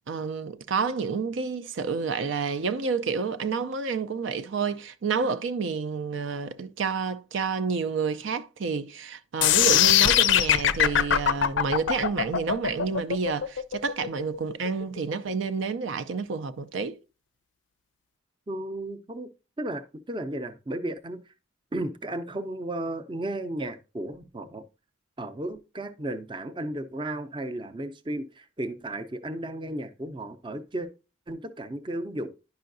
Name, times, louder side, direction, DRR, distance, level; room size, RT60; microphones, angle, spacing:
voice 1, 0.1-17.0, right 5 dB, 75° right, 0.5 m, -29 dB
sound 1, 9.4-15.4, left 10 dB, 70° left, 0.4 m, -22 dB
voice 2, 18.5-19.3 19.6-21.2 21.7-24.6 25.2-30.9 31.3-32.3, right 1 dB, 25° right, 0.5 m, -34 dB
10.5 x 5.6 x 2.6 m
head